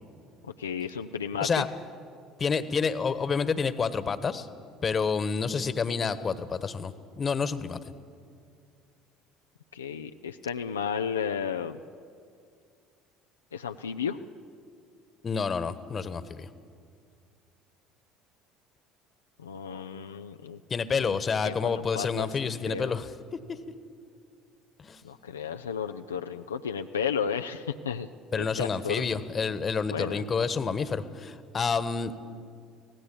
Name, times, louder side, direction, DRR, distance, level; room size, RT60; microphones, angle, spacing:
voice 1, 0.6-1.6 9.7-11.8 13.5-14.2 19.4-20.6 21.0-21.2 21.4-22.3 22.7-22.9 25.0-28.1 28.3-29.0 29.9-30.2, left 7 dB, 80° left, 6 dB, 0.5 m, -33 dB
voice 2, 2.4-4.5 4.8-7.9 15.2-16.5 20.7-23.4 24.8-25.0 28.3-32.1, left 5 dB, 30° left, 14 dB, 1.3 m, -29 dB
25.0 x 17.5 x 8.7 m, 2.3 s
figure-of-eight pair, 60°, 0 cm